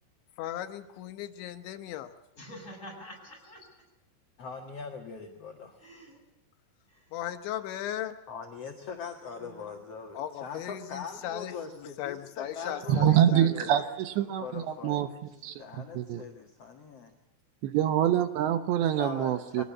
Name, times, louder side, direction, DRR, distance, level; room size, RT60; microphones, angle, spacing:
voice 1, 0.4-2.1 7.1-8.2 10.1-11.5 12.0-13.7, left 12 dB, 80° left, 8 dB, 3.3 m, -37 dB
voice 2, 2.4-3.7 5.8-6.2 9.2-9.7 12.6-13.2 13.5-14.0 14.4-14.6, equal, 15° left, 0 dB, 7.5 m, -47 dB
voice 3, 4.4-5.8 8.3-13.8 14.4-17.1 18.9-19.6, left 5 dB, 50° left, 3 dB, 1.9 m, -42 dB
voice 4, 12.9-15.1 15.4-15.6 15.9-16.2 17.6-19.6, right 11 dB, 75° right, 10 dB, 3.1 m, -25 dB
23.5 x 18.5 x 8.5 m, 0.86 s
omnidirectional pair, 5.4 m